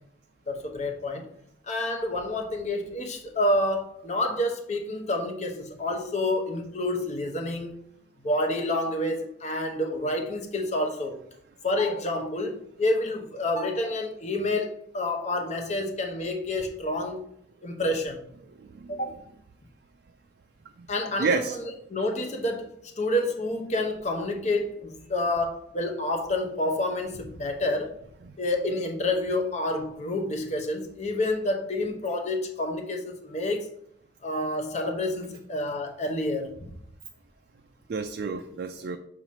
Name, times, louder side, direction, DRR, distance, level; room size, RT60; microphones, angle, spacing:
voice 1, 0.5-1.3 1.7-7.7 8.2-11.2 11.6-17.2 17.6-18.2 18.9-19.2 20.9-28.0 28.4-33.7 34.2-36.6, left 1 dB, 40° left, 3 dB, 0.9 m, -28 dB
voice 2, 18.6-18.9 20.8-20.9 21.2-21.6 28.3-28.4 37.9-39.0, right 4 dB, 55° right, 6 dB, 0.4 m, -30 dB
6.2 x 2.9 x 5.7 m, 0.70 s
head